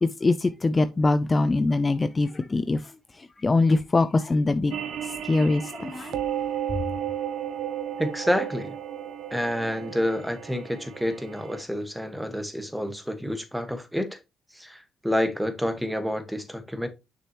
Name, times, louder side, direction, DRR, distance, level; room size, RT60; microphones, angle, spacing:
voice 1, 0.0-6.2, left 3 dB, 25° left, 0.4 m, -23 dB
sound 1, 4.7-11.6, right 10 dB, 75° right, 1.1 m, -33 dB
voice 2, 8.0-8.8 9.3-14.2 14.5-16.9, equal, 5° right, 1.5 m, -28 dB
6.6 x 6.1 x 3.0 m
cardioid pair, 90°, 0 cm